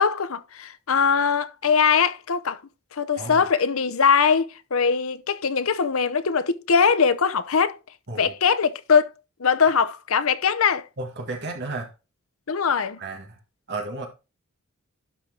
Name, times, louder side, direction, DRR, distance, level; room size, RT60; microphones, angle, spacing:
voice 1, 0.0-2.6 2.9-7.8 8.2-9.1 9.4-10.8 12.5-13.0, left 6 dB, 70° left, 0.7 m, -21 dB
voice 2, 11.0-11.9 13.0-13.4 13.7-14.1, right 2 dB, 50° right, 1.8 m, -33 dB
12.0 x 4.4 x 3.8 m
head